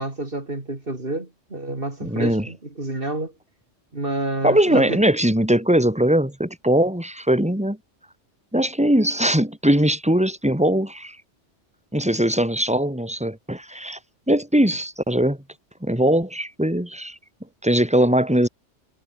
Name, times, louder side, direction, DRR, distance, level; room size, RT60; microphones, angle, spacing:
voice 1, 0.0-3.3 3.9-5.0, right 2 dB, 50° right, 3.9 m, -29 dB
voice 2, 2.0-2.5 4.4-7.8 8.5-11.2 11.9-14.0 14.3-15.4 15.8-17.2 17.6-18.5, right 1 dB, 5° right, 4.7 m, -20 dB
omnidirectional pair, 1.2 m